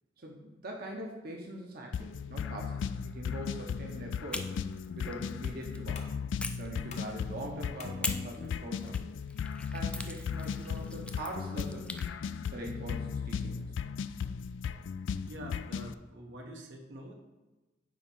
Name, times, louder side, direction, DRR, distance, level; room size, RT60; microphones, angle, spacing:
voice 1, 0.2-2.8 3.1-4.5 5.0-6.0 6.6-9.0 9.7-11.9 12.5-13.6, right 1 dB, 55° right, 0 dB, 0.9 m, -42 dB
sound 1, 1.9-15.9, left 6 dB, 90° left, 0.3 m, -36 dB
sound 2, 4.3-5.8 6.4-7.4 8.0-12.1, left 2 dB, 5° left, 0.4 m, -43 dB
sound 3, 6.0-11.4, left 4 dB, 40° left, 0.7 m, -57 dB
voice 2, 15.2-17.1, right 1 dB, 80° right, 1 dB, 1.1 m, -46 dB
8.7 x 3.0 x 5.5 m, 1.1 s
head